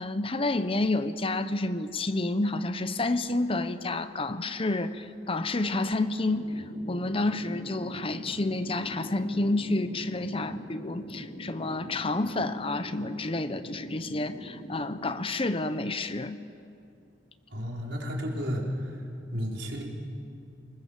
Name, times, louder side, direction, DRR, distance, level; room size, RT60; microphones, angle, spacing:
voice 1, 0.0-16.4, left 2 dB, 30° left, 12 dB, 0.8 m, -29 dB
sound 1, 6.2-15.1, equal, 80° left, 3.7 m, -43 dB
voice 2, 17.5-19.0 19.3-19.8, equal, 85° right, -2 dB, 4.5 m, -32 dB
29.0 x 20.5 x 7.3 m, 2.5 s
head